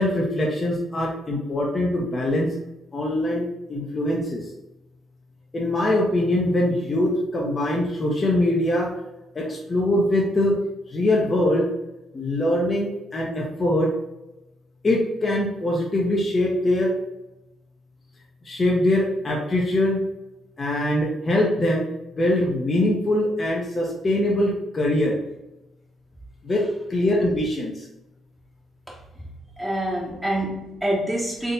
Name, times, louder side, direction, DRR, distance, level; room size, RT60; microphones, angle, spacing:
voice 1, 0.0-2.5 2.9-4.4 5.5-8.9 9.3-10.6 10.9-11.7 12.1-14.0 14.8-16.9 18.4-20.0 20.6-21.8 22.2-25.2 26.4-27.8, left 1 dB, 35° left, -2 dB, 0.8 m, -22 dB
voice 2, 29.6-31.5, right 1 dB, 5° right, -4 dB, 1.0 m, -26 dB
3.7 x 3.7 x 2.7 m, 0.96 s
figure-of-eight pair, 45°, 0 cm